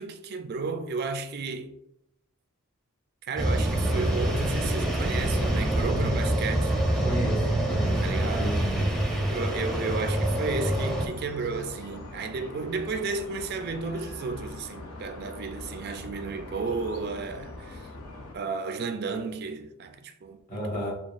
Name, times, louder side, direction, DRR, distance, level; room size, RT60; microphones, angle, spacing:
voice 1, 0.0-1.7 3.2-6.7 8.0-8.7 9.3-17.9 18.3-21.0, right 4 dB, 45° right, 0.4 m, -33 dB
sound 1, 3.4-11.1, right 1 dB, ahead, 0.6 m, -26 dB
voice 2, 7.0-8.9 20.5-21.0, equal, 40° left, 1.4 m, -33 dB
sound 2, 9.4-18.3, left 2 dB, 85° left, 0.7 m, -42 dB
6.9 x 2.3 x 2.4 m
head